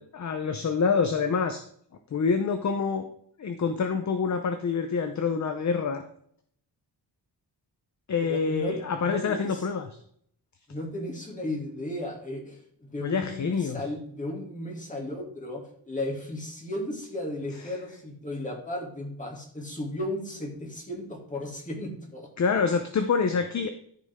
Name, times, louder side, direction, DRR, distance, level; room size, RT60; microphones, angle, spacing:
voice 1, 0.0-1.6 2.1-3.1 3.4-6.0 8.1-9.9 13.0-13.9 17.6-17.8 22.4-23.7, left 5 dB, 45° left, 7 dB, 0.7 m, -26 dB
voice 2, 8.3-9.6 10.7-22.3, left 1 dB, 20° left, -1 dB, 2.6 m, -35 dB
13.5 x 5.3 x 3.7 m, 0.64 s
wide cardioid pair, 165°, 41 cm